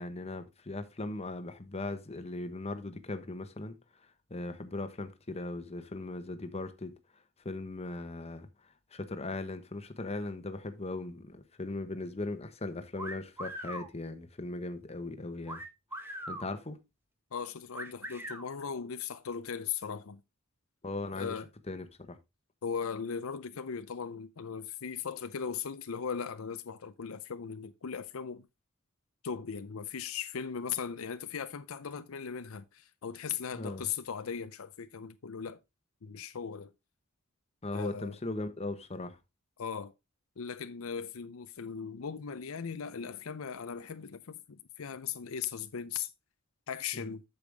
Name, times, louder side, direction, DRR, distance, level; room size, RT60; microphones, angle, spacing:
voice 1, 0.0-3.8 4.3-7.0 7.4-8.5 8.9-15.6 16.3-16.8 20.8-21.3 21.7-22.2 33.5-33.9 37.6-39.2 46.9-47.1, left 2 dB, 30° left, 1.1 m, -38 dB
sound 1, 13.0-13.9 15.5-16.5 17.7-18.5, equal, 10° right, 1.4 m, -40 dB
voice 2, 17.3-20.2 21.1-21.5 22.6-28.4 29.2-35.6 36.0-36.7 37.7-38.2 39.6-39.9 40.4-46.1 46.7-47.2, left 6 dB, 80° left, 0.6 m, -38 dB
8.3 x 6.9 x 3.4 m
head